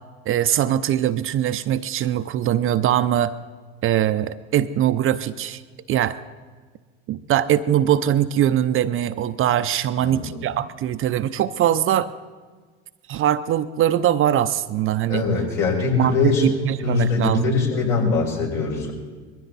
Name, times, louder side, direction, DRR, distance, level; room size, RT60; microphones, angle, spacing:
voice 1, 0.3-3.3 3.8-5.6 5.9-6.2 7.1-12.1 13.1-15.3 15.9-17.5, right 11 dB, 35° right, 12 dB, 0.5 m, -21 dB
voice 2, 10.0-10.3 15.1-16.4 16.8-18.9, left 4 dB, 65° left, -1 dB, 5.3 m, -22 dB
21.0 x 15.5 x 4.1 m, 1.5 s
supercardioid pair, 100°, 36 cm